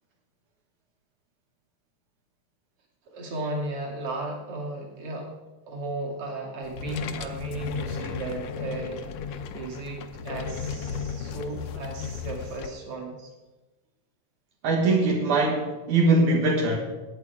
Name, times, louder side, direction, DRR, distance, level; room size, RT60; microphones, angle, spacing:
voice 1, 3.1-5.3 5.7-13.2, right 2 dB, 45° right, -1 dB, 3.2 m, -35 dB
sound 1, 6.6-12.7, left 6 dB, 70° left, 1.5 m, -35 dB
voice 2, 14.6-16.8, right 3 dB, 70° right, 0 dB, 2.9 m, -22 dB
17.5 x 9.3 x 4.9 m, 1.2 s
omnidirectional pair, 3.5 m